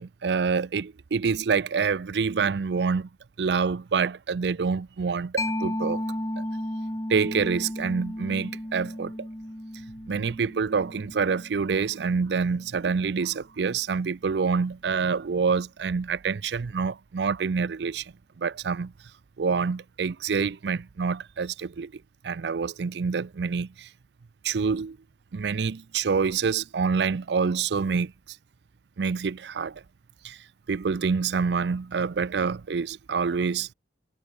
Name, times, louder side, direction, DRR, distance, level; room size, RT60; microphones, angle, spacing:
voice 1, 0.0-3.1 3.4-6.0 7.1-9.1 10.1-18.0 18.4-18.9 19.4-21.9 22.2-23.7 24.4-25.0 25.3-28.1 29.0-29.7 30.2-30.3 30.7-33.7, right 5 dB, 80° right, 0.5 m, -26 dB
Mallet percussion, 5.4-12.6, left 1 dB, 20° left, 2.4 m, -34 dB
head